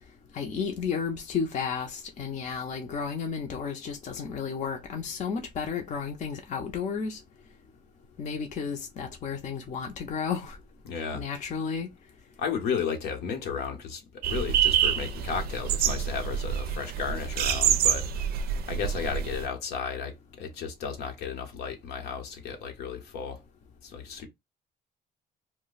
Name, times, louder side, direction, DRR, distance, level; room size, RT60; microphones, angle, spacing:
voice 1, 0.3-7.2 8.2-10.6 11.1-11.9, left 6 dB, 45° left, 0.6 m, -32 dB
voice 2, 10.8-11.2 12.4-23.4 23.8-24.3, left 6 dB, 75° left, 0.9 m, -34 dB
sound 1, 14.2-19.4, right 9 dB, 65° right, 0.4 m, -27 dB
2.3 x 2.1 x 3.9 m
cardioid pair, 90°, 17 cm